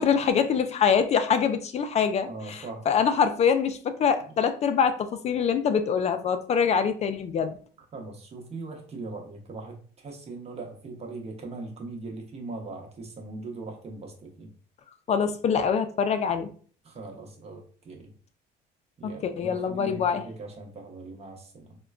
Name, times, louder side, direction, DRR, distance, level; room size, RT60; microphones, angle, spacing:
voice 1, 0.0-7.6 15.1-16.5 19.0-20.2, left 7 dB, 40° left, 0.4 m, -24 dB
voice 2, 2.3-2.9 7.9-14.5 16.8-18.1 19.0-21.8, right 3 dB, 40° right, 0.8 m, -40 dB
3.6 x 2.2 x 2.3 m
cardioid pair, 110°, 17 cm